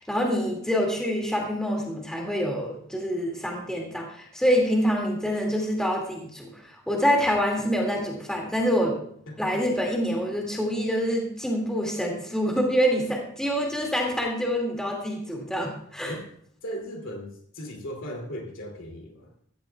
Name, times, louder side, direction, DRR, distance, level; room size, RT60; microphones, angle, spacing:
voice 1, 0.0-8.9 9.4-16.1, equal, 5° left, -1 dB, 2.1 m, -26 dB
voice 2, 9.3-9.6 16.1-16.3 16.6-19.3, equal, 75° left, 1 dB, 2.7 m, -37 dB
14.5 x 14.5 x 2.3 m, 0.64 s
head